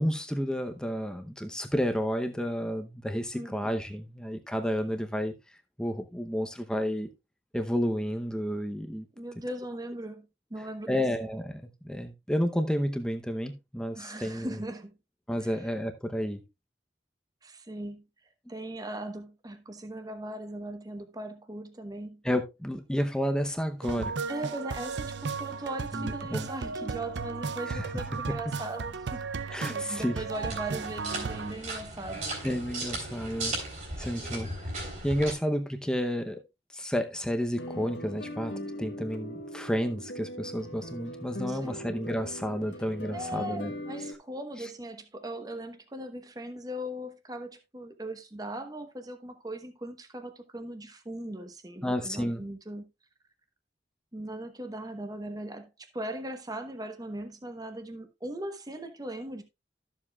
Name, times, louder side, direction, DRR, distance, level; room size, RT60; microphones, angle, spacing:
voice 1, 0.0-5.3 5.8-7.1 7.5-9.1 10.9-14.6 15.3-16.4 22.2-24.2 25.9-26.5 27.7-27.9 29.5-30.1 32.4-33.6 34.0-34.5 35.0-36.4 36.7-43.7 51.8-52.4, equal, 5° left, 0.7 m, -31 dB
voice 2, 9.2-11.0 13.9-14.9 15.4-15.7 17.4-18.0 18.5-22.2 24.3-29.3 29.7-32.2 41.5-41.8 43.1-52.9 54.1-59.4, right 1 dB, 20° right, 1.0 m, -39 dB
sound 1, 23.8-31.5, right 4 dB, 80° right, 0.5 m, -35 dB
sound 2, 30.3-35.3, right 2 dB, 45° right, 3.6 m, -36 dB
sound 3, 37.6-44.1, equal, 80° left, 1.4 m, -40 dB
13.0 x 7.3 x 2.3 m
head